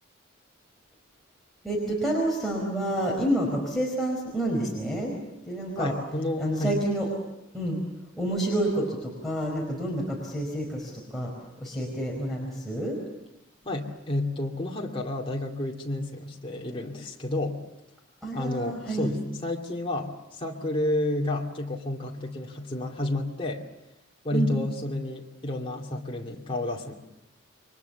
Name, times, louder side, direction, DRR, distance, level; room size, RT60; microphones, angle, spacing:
voice 1, 1.6-5.2 5.5-5.9 6.4-7.1 7.5-7.8 8.2-11.3 11.6-13.0 18.2-19.1 24.3-24.5, right 1 dB, ahead, -3 dB, 4.8 m, -28 dB
voice 2, 5.8-6.7 13.7-17.6 18.3-23.6 24.2-27.0, left 1 dB, 25° left, -1 dB, 2.5 m, -30 dB
28.5 x 23.5 x 7.2 m, 0.90 s
head